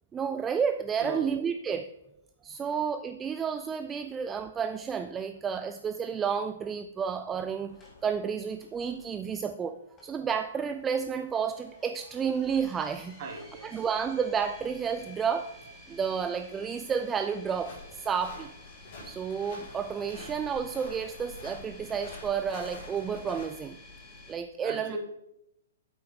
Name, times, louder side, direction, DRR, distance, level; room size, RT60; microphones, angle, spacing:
voice 1, 0.1-1.9 2.4-13.2 13.6-15.5 15.9-18.5 19.0-23.8 24.3-25.0, right 6 dB, 15° right, 9 dB, 0.3 m, -31 dB
voice 2, 1.0-1.3 13.2-13.8 24.6-25.0, right 4 dB, 40° right, 2 dB, 1.7 m, -39 dB
sound 1, 7.7-24.3, left 2 dB, 15° left, 2.1 m, -52 dB
sound 2, 17.5-23.5, left 3 dB, 45° left, 3.6 m, -46 dB
8.4 x 7.7 x 3.3 m, 0.84 s
figure-of-eight pair, 120°, 0 cm